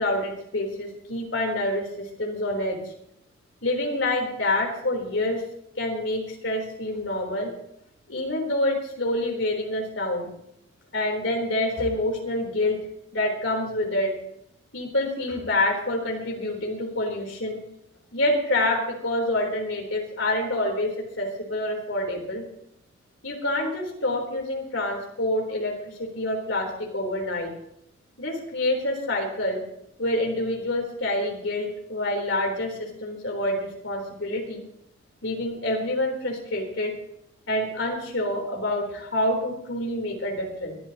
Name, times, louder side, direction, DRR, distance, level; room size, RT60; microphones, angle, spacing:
voice 1, 0.0-2.9 3.6-5.4 5.8-7.5 8.1-10.3 10.9-12.8 13.1-14.1 14.7-17.6 18.1-22.4 23.2-27.5 28.2-29.6 30.0-34.6 35.2-36.9 37.5-40.8, left 1 dB, 70° left, 1 dB, 4.0 m, -27 dB
23.0 x 12.0 x 3.0 m, 0.75 s
head